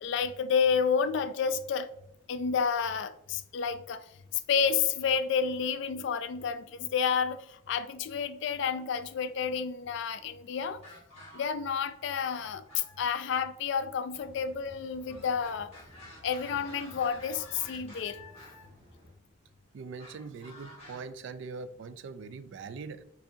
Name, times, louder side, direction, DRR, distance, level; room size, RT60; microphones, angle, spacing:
voice 1, 0.0-1.9 2.3-4.0 4.3-10.8 11.3-15.7 16.2-18.2, left 6 dB, 60° left, 0.3 m, -30 dB
sound 1, 10.6-11.8 12.1-13.3 15.1-18.7 20.0-21.0, left 1 dB, 30° left, 1.3 m, -51 dB
sound 2, 14.1-19.1, equal, 25° right, 1.1 m, -56 dB
voice 2, 19.7-23.0, right 4 dB, 60° right, 0.3 m, -42 dB
4.7 x 2.7 x 2.7 m
head